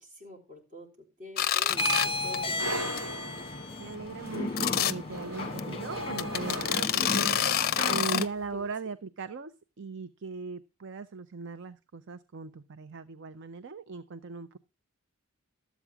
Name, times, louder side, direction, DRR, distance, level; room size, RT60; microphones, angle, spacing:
voice 1, 0.0-3.1 8.4-8.7, left 1 dB, 35° right, -1 dB, 3.8 m, -48 dB
sound 1, 1.4-2.1 2.3-2.6 3.0-3.1 3.4-3.5 4.6-4.9 5.6-5.7 6.2-8.2, left 9 dB, 45° left, 0.6 m, -27 dB
sound 2, 1.7-8.3, left 2 dB, 25° left, 1.2 m, -34 dB
sound 3, 2.6-7.5, right 1 dB, 75° right, 3.3 m, -39 dB
voice 2, 3.8-7.5 7.9-9.5 9.8-14.6, right 5 dB, 55° right, 13 dB, 0.5 m, -39 dB
12.5 x 8.1 x 4.7 m, 0.31 s
head